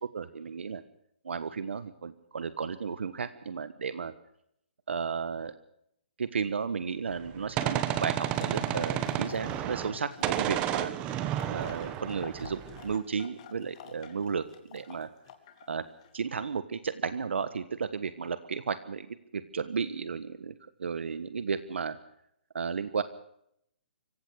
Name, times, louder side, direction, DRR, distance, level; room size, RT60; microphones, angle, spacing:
voice 1, 0.1-0.8 1.2-4.1 4.9-5.5 6.2-10.9 11.5-15.1 15.7-15.8 16.1-22.0 22.5-23.0, right 6 dB, 85° right, 13 dB, 1.4 m, -34 dB
Gunshot gunfire, 7.1-10.0 10.2-13.0, right 12 dB, 15° right, 1.1 m, -31 dB
sound 1, 8.3-16.2, left 8 dB, 35° left, 2.8 m, -49 dB
25.5 x 16.0 x 6.5 m, 0.74 s
hypercardioid pair, 170°, 6 cm